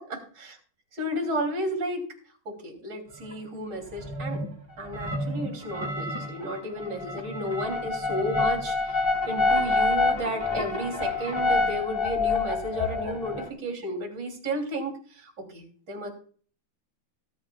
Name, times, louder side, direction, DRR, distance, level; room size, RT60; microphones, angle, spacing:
voice 1, 0.1-0.6 0.9-2.0 2.5-4.4 4.8-9.0 9.3-16.1, right 1 dB, 55° right, 3 dB, 3.7 m, -33 dB
sound 1, 3.2-3.3 3.9-4.5 4.8-13.5, left 3 dB, 15° left, 1.8 m, -27 dB
18.0 x 10.0 x 2.4 m, 0.44 s
omnidirectional pair, 2.3 m